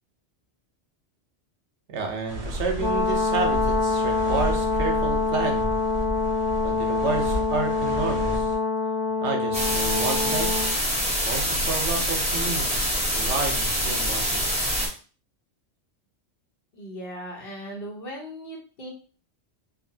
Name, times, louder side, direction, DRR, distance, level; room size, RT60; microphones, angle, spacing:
voice 1, 1.9-5.7 6.6-8.5 9.2-10.5 11.2-14.4, right 4 dB, 75° right, 3 dB, 1.0 m, -30 dB
sound 1, 2.3-8.6, equal, 45° right, 0.5 m, -32 dB
Brass instrument, 2.8-10.7, left 3 dB, 90° left, 1.3 m, -25 dB
sound 2, 9.5-14.9, equal, 5° right, 0.7 m, -25 dB
voice 2, 16.7-18.9, equal, 55° left, -1 dB, 1.1 m, -38 dB
2.7 x 2.6 x 2.6 m, 0.38 s
omnidirectional pair, 1.2 m